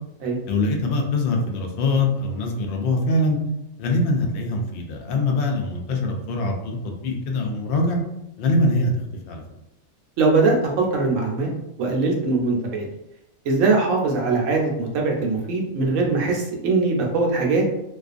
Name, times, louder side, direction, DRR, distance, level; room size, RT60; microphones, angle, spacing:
voice 1, 0.5-3.4 3.8-8.0 8.4-8.9 9.3-9.4, left 2 dB, 80° left, 2 dB, 0.5 m, -23 dB
voice 2, 10.2-11.5 11.8-12.8 13.5-17.6, right 3 dB, 70° right, 0 dB, 0.9 m, -21 dB
2.4 x 2.3 x 2.4 m, 0.87 s
omnidirectional pair, 1.5 m